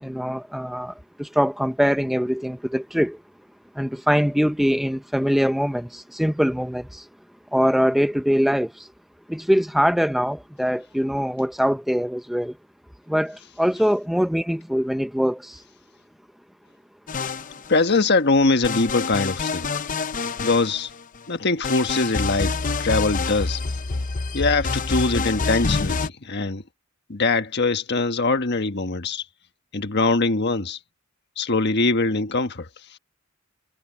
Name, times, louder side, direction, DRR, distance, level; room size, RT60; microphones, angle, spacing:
voice 1, 0.0-3.2 3.8-7.1 7.5-8.9 9.3-12.5 13.1-15.6, equal, ahead, 0.7 m, -23 dB
sound 1, 17.1-18.0 18.6-21.2 21.6-26.1, left 4 dB, 40° left, 0.7 m, -27 dB
voice 2, 17.7-19.7 20.4-20.9 21.3-22.5 22.8-23.6 24.3-26.6 27.1-29.2 29.7-30.8 31.4-33.0, left 3 dB, 55° left, 1.4 m, -22 dB
head